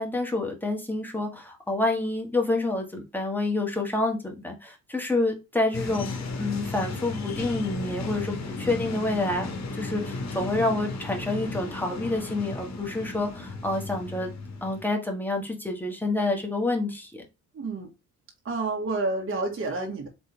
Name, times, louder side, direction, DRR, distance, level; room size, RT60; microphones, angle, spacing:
voice 1, 0.0-9.5 9.7-14.3 14.6-17.2, left 2 dB, 5° left, 1.7 m, -28 dB
sound 1, 5.7-14.8, left 3 dB, 60° left, 1.3 m, -35 dB
voice 2, 17.5-17.9 18.5-20.1, right 3 dB, 45° right, 1.8 m, -29 dB
4.2 x 3.4 x 3.4 m
cardioid pair, 90°, 30 cm